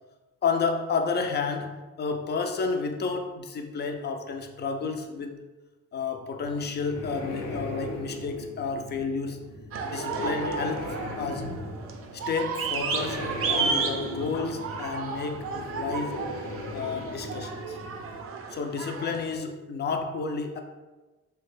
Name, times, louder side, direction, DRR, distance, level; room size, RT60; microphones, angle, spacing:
voice 1, 0.4-5.4 5.9-9.4 9.8-11.6 12.1-16.3 16.7-17.8 18.5-20.6, left 4 dB, 35° left, 5 dB, 0.4 m, -31 dB
sound 1, 6.4-18.2, left 1 dB, 85° left, 0.7 m, -38 dB
sound 2, 9.7-19.3, right 5 dB, 50° right, 0.5 m, -33 dB
3.3 x 2.2 x 3.2 m, 1.1 s
cardioid pair, 90°, 30 cm